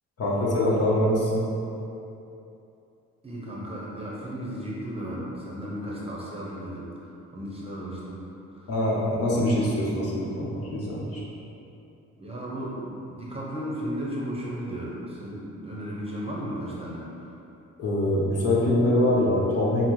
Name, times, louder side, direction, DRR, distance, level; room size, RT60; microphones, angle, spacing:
voice 1, 0.2-1.4 8.7-11.2 17.8-19.8, left 1 dB, 55° left, -5 dB, 0.9 m, -24 dB
voice 2, 3.2-8.7 12.2-17.3, equal, 20° right, -5 dB, 0.8 m, -35 dB
5.6 x 2.0 x 3.1 m, 2.8 s
cardioid pair, 90°, 30 cm